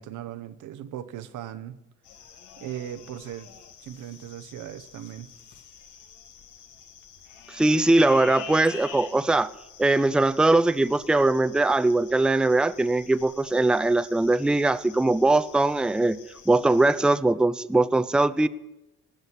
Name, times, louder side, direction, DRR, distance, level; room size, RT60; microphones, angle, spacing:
voice 1, 0.0-1.8 2.6-3.5 3.8-5.3, right 11 dB, 85° right, 1.0 m, -38 dB
sound 1, 2.0-17.1, left 7 dB, 80° left, 1.6 m, -47 dB
voice 2, 7.5-9.5 9.8-16.2 16.5-18.5, right 2 dB, 5° right, 0.5 m, -21 dB
18.0 x 6.3 x 9.8 m
cardioid pair, 90°, 30 cm